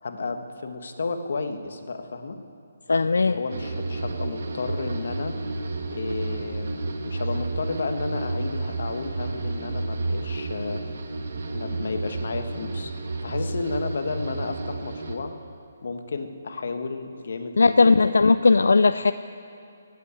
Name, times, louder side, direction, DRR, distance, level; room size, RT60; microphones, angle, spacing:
voice 1, 0.0-2.4 3.2-5.4 5.9-6.8 7.0-10.8 11.5-12.9 13.2-15.3 15.8-18.0, left 3 dB, 65° left, 7 dB, 1.3 m, -32 dB
voice 2, 2.9-3.4 17.6-19.1, left 4 dB, 90° left, 13 dB, 0.4 m, -18 dB
sound 1, 3.5-15.2, right 3 dB, 65° right, 1.5 m, -31 dB
17.0 x 8.5 x 8.4 m, 2.6 s
hypercardioid pair, 165°, 0 cm